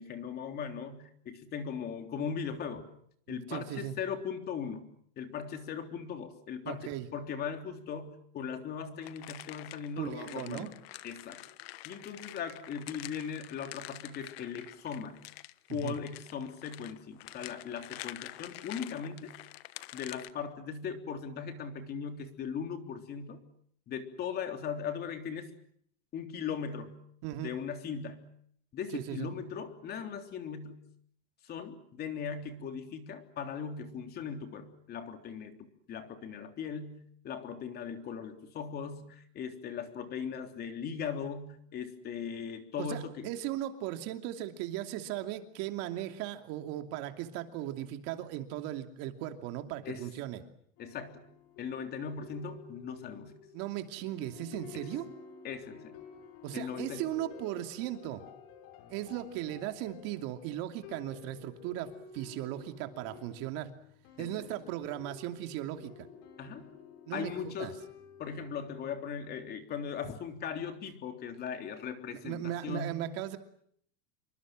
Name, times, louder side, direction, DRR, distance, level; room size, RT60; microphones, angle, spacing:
voice 1, 0.0-2.9 3.3-4.9 5.2-10.7 11.0-11.4 11.8-15.2 15.7-19.4 19.9-23.4 23.9-25.5 26.1-27.0 27.4-28.3 28.7-30.8 31.4-43.3 49.8-50.1 50.8-51.3 51.6-53.4 55.4-56.0 56.5-57.1 64.2-64.3 66.4-66.7 67.1-67.8 68.2-73.1, left 6 dB, 30° left, 6 dB, 3.5 m, -39 dB
voice 2, 3.3-3.9 6.6-7.1 10.0-10.7 15.7-16.0 27.2-27.5 28.9-29.3 42.8-50.4 53.5-55.1 56.4-58.2 58.9-63.7 64.2-65.9 67.1-67.7 72.2-73.4, right 13 dB, 50° right, 6 dB, 2.8 m, -37 dB
sound 1, 9.0-20.3, left 16 dB, 75° left, 1.3 m, -47 dB
sound 2, 50.8-68.8, left 6 dB, 50° left, 4.4 m, -52 dB
27.5 x 24.0 x 7.7 m, 0.67 s
supercardioid pair, 145°, 31 cm